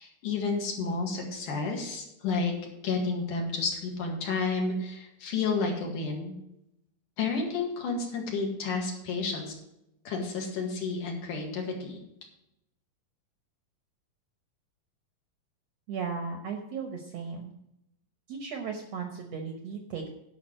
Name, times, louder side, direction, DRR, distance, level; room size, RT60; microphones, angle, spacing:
voice 1, 0.0-2.5 2.8-6.3 7.2-9.5 10.1-12.0, left 4 dB, 65° left, 0 dB, 3.4 m, -31 dB
voice 2, 15.9-17.5 18.3-20.1, right 5 dB, 65° right, 4 dB, 1.7 m, -36 dB
11.0 x 5.8 x 7.5 m, 0.84 s
omnidirectional pair, 4.0 m